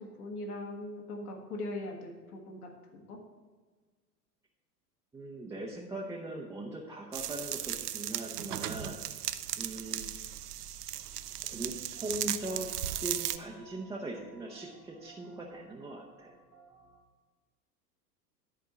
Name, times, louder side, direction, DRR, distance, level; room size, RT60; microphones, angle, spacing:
voice 1, 0.0-3.2, left 1 dB, 65° left, 2 dB, 1.6 m, -41 dB
voice 2, 5.1-9.0 9.6-10.1 11.5-11.7 12.0-12.7 13.0-16.3, right 1 dB, 5° right, -3 dB, 0.5 m, -40 dB
sound 1, 7.1-13.4, right 12 dB, 70° right, 0.6 m, -36 dB
sound 2, 11.9-17.0, right 4 dB, 85° right, 1.2 m, -58 dB
10.5 x 4.5 x 6.1 m, 1.4 s
figure-of-eight pair, 85°, 49 cm